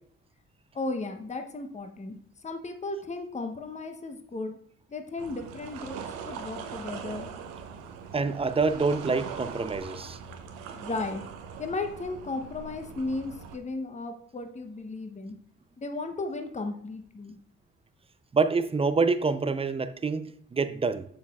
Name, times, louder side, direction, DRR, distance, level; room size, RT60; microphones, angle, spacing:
voice 1, 0.7-2.2 2.4-4.5 4.9-6.0 6.3-7.3 10.7-11.2 11.6-15.4 15.8-17.4, left 3 dB, 20° left, 0.9 m, -35 dB
sound 1, 5.2-13.6, right 7 dB, 75° right, 0.7 m, -41 dB
voice 2, 8.1-10.2 18.3-21.1, right 4 dB, 15° right, 0.5 m, -26 dB
6.9 x 6.7 x 2.4 m
hypercardioid pair, 45°, 35 cm